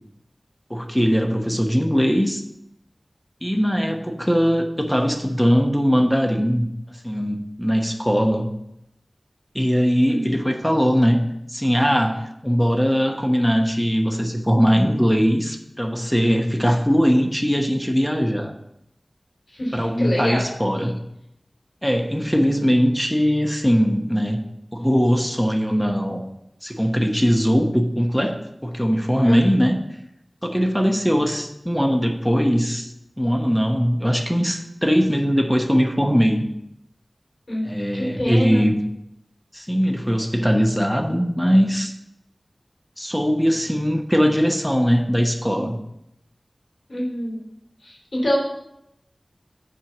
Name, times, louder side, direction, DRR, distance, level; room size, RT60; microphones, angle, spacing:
voice 1, 0.7-2.4 3.4-6.7 7.0-8.5 9.5-11.2 11.5-18.5 19.7-21.0 21.8-24.4 24.7-26.2 26.6-29.8 30.4-32.9 33.2-36.5 37.6-38.8 39.5-41.9 43.0-45.8, equal, 5° left, 3 dB, 1.0 m, -20 dB
voice 2, 19.5-20.4 29.2-29.4 37.5-38.7 46.9-47.4 47.8-48.4, equal, 65° left, -3 dB, 3.3 m, -26 dB
7.5 x 4.6 x 7.1 m, 0.83 s
wide cardioid pair, 65°, 0 cm